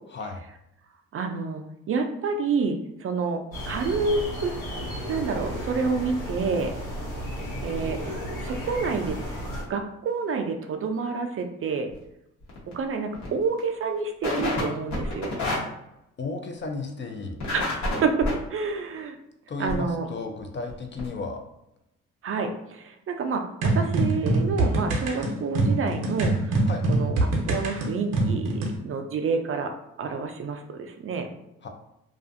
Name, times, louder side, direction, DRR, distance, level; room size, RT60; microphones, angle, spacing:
voice 1, 0.1-0.4 16.2-17.4 19.5-21.4 26.7-26.9 31.6-31.7, left 3 dB, 35° left, 4 dB, 0.5 m, -33 dB
voice 2, 1.1-4.5 5.1-6.7 7.6-8.0 8.4-9.2 9.7-11.9 12.7-15.3 17.5-19.1 19.6-20.1 22.2-26.6 26.9-27.1 27.5-29.7 30.0-31.3, right 4 dB, 45° right, 5 dB, 0.4 m, -28 dB
sound 1, 3.5-9.6, equal, 85° left, 1.3 m, -33 dB
sound 2, 11.9-12.0 12.4-12.7 13.1-13.3 13.6-13.7 14.2-14.6 14.9-15.6 17.4-18.3 19.7-19.8 20.4-20.5 20.7-20.8 21.0-21.1, left 2 dB, 65° left, 1.1 m, -28 dB
sound 3, 23.6-28.8, right 2 dB, 80° right, 0.7 m, -24 dB
2.4 x 2.3 x 2.5 m, 0.83 s
supercardioid pair, 65°, 31 cm